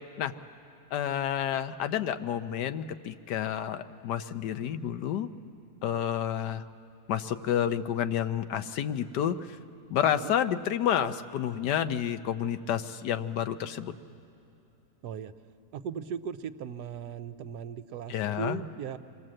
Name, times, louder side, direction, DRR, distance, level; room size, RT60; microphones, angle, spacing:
voice 1, 0.9-5.3 5.8-6.6 7.1-9.6 9.9-13.9 18.1-18.6, left 10 dB, 85° left, 10 dB, 1.3 m, -30 dB
voice 2, 10.0-10.4 15.0-15.3 15.7-19.0, right 7 dB, 75° right, 10 dB, 1.3 m, -38 dB
26.5 x 19.5 x 7.6 m, 2.7 s
omnidirectional pair, 1.8 m